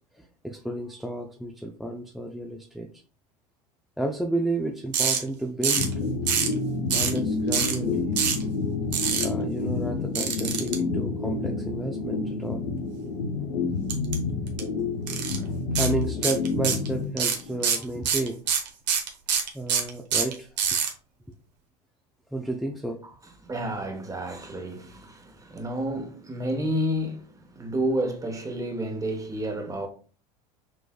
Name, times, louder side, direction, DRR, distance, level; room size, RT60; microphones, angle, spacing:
voice 1, 0.1-2.9 4.0-6.2 6.9-8.1 9.2-12.7 15.4-18.4 19.5-20.8 22.3-23.0, right 2 dB, ahead, 0.5 m, -32 dB
sound 1, 4.9-5.2 5.6-5.9 6.3-6.5 6.9-7.2 7.5-7.7 8.2-8.4 8.9-9.2 10.2-10.7 13.9-14.2 14.5-14.6 15.1-15.4 15.8-15.9 16.2-16.9 17.2-20.9, right 7 dB, 85° right, 1.1 m, -24 dB
sound 2, 5.7-17.6, left 4 dB, 90° left, 0.8 m, -29 dB
voice 2, 23.4-29.9, right 1 dB, 15° right, 1.2 m, -30 dB
6.1 x 3.2 x 2.3 m
hypercardioid pair, 85°, 21 cm